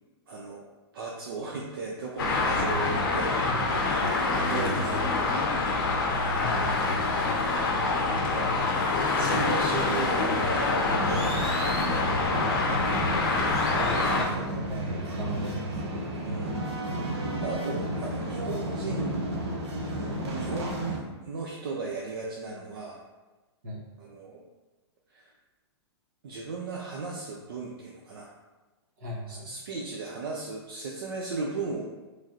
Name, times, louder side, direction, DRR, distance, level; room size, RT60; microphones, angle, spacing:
voice 1, 0.3-0.6 0.9-3.5 4.4-5.5 7.9-8.6 9.2-12.1 16.2-16.5 17.4-19.2 19.9-23.0 24.0-24.4 25.1-25.3 26.2-28.3 29.3-31.8, right 4 dB, 55° right, -2 dB, 0.5 m, -36 dB
Traffic noise roadway noise, 2.2-14.2, left 3 dB, 50° left, 0.6 m, -26 dB
voice 2, 6.4-6.9 12.7-15.7 23.6-23.8 29.0-29.5, equal, 40° right, -3 dB, 0.9 m, -38 dB
sound 1, 10.9-21.0, right 1 dB, 70° right, 0.9 m, -32 dB
4.0 x 3.2 x 2.5 m, 1.2 s
hypercardioid pair, 180°, 14 cm